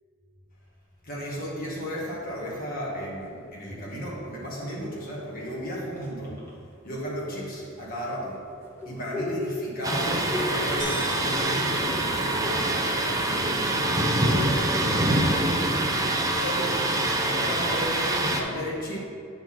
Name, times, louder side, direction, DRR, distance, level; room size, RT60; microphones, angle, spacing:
voice 1, 1.0-6.5 6.8-8.5 8.9-15.3 16.0-19.0, equal, 45° left, -5 dB, 1.8 m, -34 dB
sound 1, 2.8-5.0 5.7-6.5 7.6-11.6 11.9-12.8 13.1-13.9 14.3-17.5, left 2 dB, 10° left, 1.2 m, -41 dB
Thunder, 9.8-18.4, right 1 dB, 15° right, 0.6 m, -25 dB
sound 2, 10.8-12.8, left 2 dB, 65° left, 1.7 m, -41 dB
8.7 x 4.0 x 6.0 m, 2.4 s
head